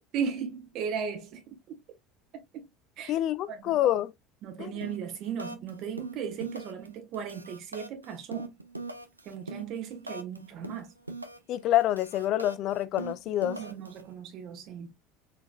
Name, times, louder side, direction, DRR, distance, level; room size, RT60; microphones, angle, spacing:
voice 1, 0.1-1.8 2.5-2.7 3.0-3.2 3.5-3.8 4.4-8.6 9.2-10.9 13.6-15.0, right 7 dB, 45° right, 1.4 m, -36 dB
voice 2, 3.1-4.1 4.6-4.7 11.5-13.6, left 13 dB, 45° left, 0.3 m, -27 dB
sound 1, 4.8-5.1 5.4-5.7 6.0-6.9 7.1-10.4 10.6-11.5 11.8-14.0, right 2 dB, 85° right, 0.5 m, -40 dB
4.0 x 3.9 x 2.4 m
figure-of-eight pair, 70°, 0 cm